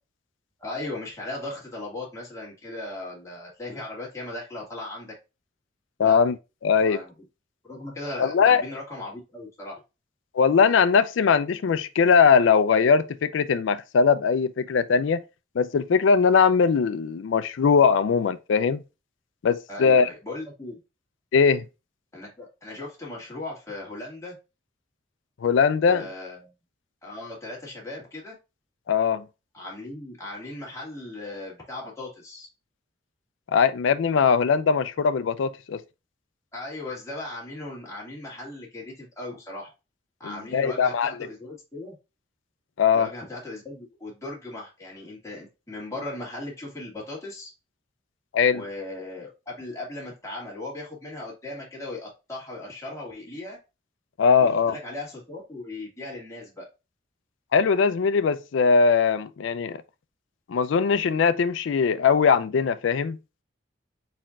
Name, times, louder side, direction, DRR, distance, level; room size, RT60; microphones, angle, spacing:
voice 1, 0.6-5.1 6.0-6.2 6.8-7.1 7.6-9.8 19.7-20.8 22.1-24.4 25.9-26.5 27.0-28.4 29.5-32.5 36.5-39.7 40.2-42.0 42.9-47.5 48.5-53.6 54.4-56.7, left 2 dB, 15° left, 1.8 m, -37 dB
voice 2, 6.0-6.4 6.6-7.0 8.2-8.6 10.3-15.2 15.6-18.8 19.4-20.1 21.3-21.6 25.4-26.1 28.9-29.2 33.5-35.8 40.2-41.1 42.8-43.1 48.3-48.6 54.2-54.7 57.5-59.8 60.5-63.2, left 6 dB, 75° left, 0.4 m, -20 dB
4.2 x 4.2 x 2.3 m
head